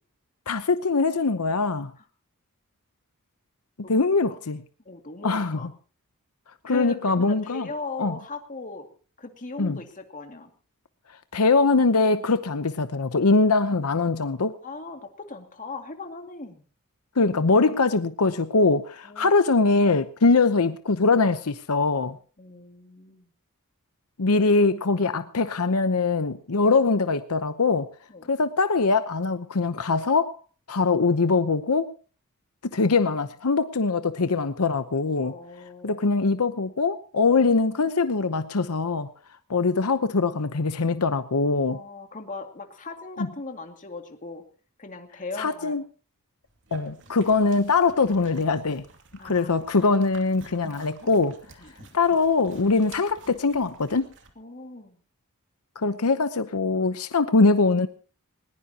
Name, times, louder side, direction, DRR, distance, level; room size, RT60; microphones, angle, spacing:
voice 1, 0.5-1.9 3.9-4.6 5.2-5.6 6.6-7.7 8.0-8.1 9.6-9.8 11.3-14.5 17.2-22.2 24.2-27.9 28.3-30.4 30.7-31.9 32.7-35.3 35.8-39.1 39.5-41.8 45.4-45.8 46.7-48.8 49.2-51.4 51.9-54.1 55.8-57.9, left 3 dB, 80° left, 0.9 m, -22 dB
voice 2, 4.8-5.7 6.7-8.9 9.2-10.5 14.6-16.6 19.0-19.3 22.4-23.3 28.1-28.3 35.2-36.0 41.7-44.4 44.8-45.8 49.2-49.5 51.6-51.9 54.4-55.0, left 3 dB, 35° left, 2.3 m, -38 dB
sound 1, 46.5-54.3, right 3 dB, 60° right, 2.7 m, -49 dB
20.0 x 20.0 x 2.9 m
head